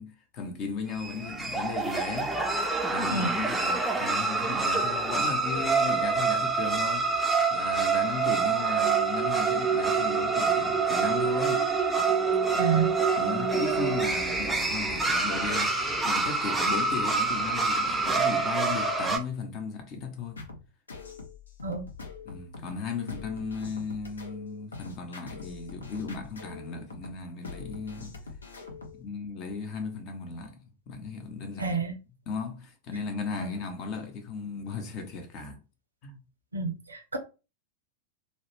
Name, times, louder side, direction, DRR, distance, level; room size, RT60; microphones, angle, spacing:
voice 1, 0.0-2.3 2.9-11.7 13.1-20.4 22.2-28.1 28.9-31.8 32.3-35.6 36.0-36.2, left 5 dB, 40° left, 0.7 m, -36 dB
sound 1, 0.9-19.2, right 4 dB, 5° right, 0.4 m, -26 dB
voice 2, 12.6-13.0 21.6-21.9 31.6-31.9 36.5-37.2, right 5 dB, 80° right, 0.5 m, -29 dB
sound 2, 20.4-29.0, left 4 dB, 75° left, 0.6 m, -44 dB
2.3 x 2.1 x 3.1 m
figure-of-eight pair, 90°, 0 cm